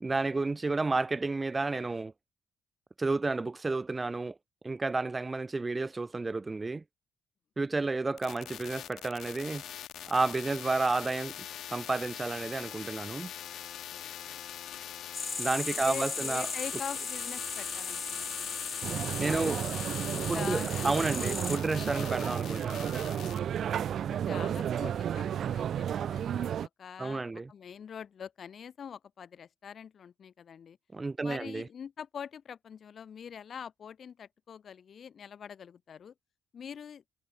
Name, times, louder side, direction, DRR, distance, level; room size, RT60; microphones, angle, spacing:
voice 1, 0.0-2.1 3.0-4.4 4.6-6.8 7.6-9.6 10.1-11.3 11.7-13.3 15.4-16.5 19.2-19.7 20.3-22.9 24.5-24.6 27.0-27.5 30.9-31.7, right 3 dB, 25° right, 0.6 m, -31 dB
sound 1, 8.2-23.4, left 11 dB, 75° left, 4.9 m, -42 dB
voice 2, 13.9-14.4 15.8-18.6 19.2-19.6 20.1-21.1 24.1-30.8 31.2-36.1 36.5-37.0, left 7 dB, 55° left, 1.8 m, -44 dB
sound 2, 15.1-21.6, left 4 dB, 30° left, 2.2 m, -37 dB
sound 3, 18.8-26.7, right 9 dB, 65° right, 0.7 m, -32 dB
cardioid pair, 90°, 0 cm